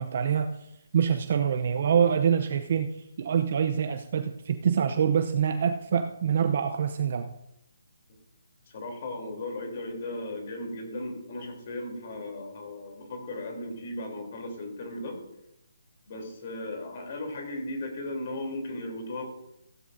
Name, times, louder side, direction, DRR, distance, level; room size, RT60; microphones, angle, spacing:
voice 1, 0.0-7.3, right 7 dB, 45° right, 7 dB, 0.7 m, -26 dB
voice 2, 8.7-15.2 16.1-19.2, left 1 dB, 40° left, 2 dB, 3.3 m, -36 dB
15.5 x 11.0 x 2.7 m, 0.85 s
hypercardioid pair, 165°, 0 cm